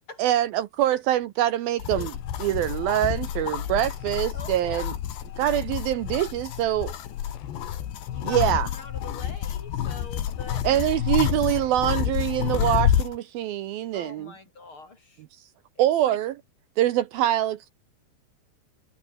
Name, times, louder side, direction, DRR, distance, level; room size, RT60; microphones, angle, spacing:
voice 1, 0.2-2.1 2.4-4.9 5.4-6.9 8.2-8.7 10.6-14.3 15.8-16.3 16.8-17.7, right 13 dB, 75° right, 2.5 m, -24 dB
sound 1, 1.8-13.2, left 10 dB, 85° left, 4.4 m, -29 dB
voice 2, 4.3-5.0 8.1-10.7 11.0-11.5 13.9-15.2 15.8-16.2, left 3 dB, 35° left, 2.7 m, -43 dB
omnidirectional pair, 4.8 m